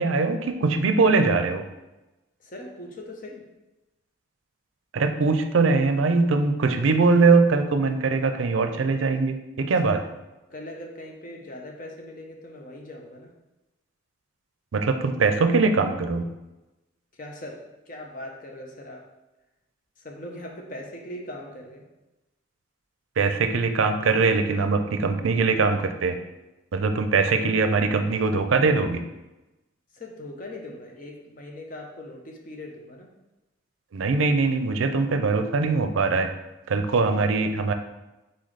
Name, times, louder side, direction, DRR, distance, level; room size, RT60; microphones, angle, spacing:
voice 1, 0.0-1.6 4.9-10.0 14.7-16.3 23.2-26.2 26.7-29.0 33.9-36.3 36.7-37.7, right 4 dB, 85° right, 7 dB, 0.4 m, -22 dB
voice 2, 2.4-3.4 9.8-10.0 10.5-13.3 17.1-17.6 17.9-19.0 20.0-21.8 29.9-33.1, left 1 dB, 45° left, 1 dB, 0.7 m, -40 dB
4.0 x 3.9 x 3.2 m, 1.0 s
head